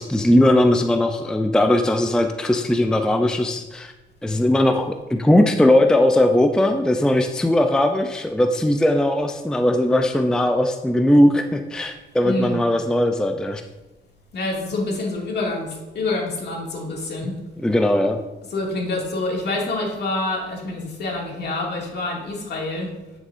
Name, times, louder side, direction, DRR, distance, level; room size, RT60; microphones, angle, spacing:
voice 1, 0.0-3.9 4.2-13.6 17.6-18.2, left 1 dB, 5° left, 5 dB, 0.5 m, -19 dB
voice 2, 12.2-12.6 14.3-17.3 18.5-22.9, left 2 dB, 55° left, -1 dB, 2.3 m, -27 dB
11.0 x 6.2 x 2.6 m, 1.1 s
cardioid pair, 90°, 20 cm